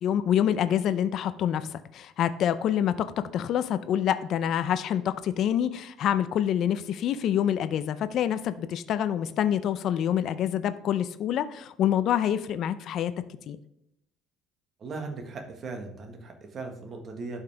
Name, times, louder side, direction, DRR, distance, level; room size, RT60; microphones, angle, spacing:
voice 1, 0.0-2.9 3.3-13.1 13.5-13.6, left 10 dB, 45° left, 12 dB, 0.5 m, -26 dB
voice 2, 14.8-17.4, right 3 dB, 35° right, 4 dB, 1.5 m, -38 dB
11.5 x 5.6 x 3.4 m, 0.81 s
cardioid pair, 165°, 0 cm